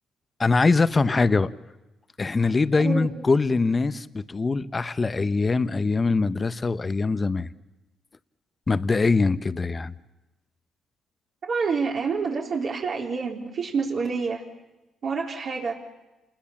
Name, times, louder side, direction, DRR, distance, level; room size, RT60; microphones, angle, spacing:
voice 1, 0.4-1.5 2.2-7.5 8.7-9.9, left 3 dB, 30° left, 1.0 m, -23 dB
voice 2, 11.5-14.5 15.0-15.8, right 5 dB, 55° right, 3.8 m, -27 dB
28.0 x 21.0 x 7.3 m
cardioid pair, 90°, 0 cm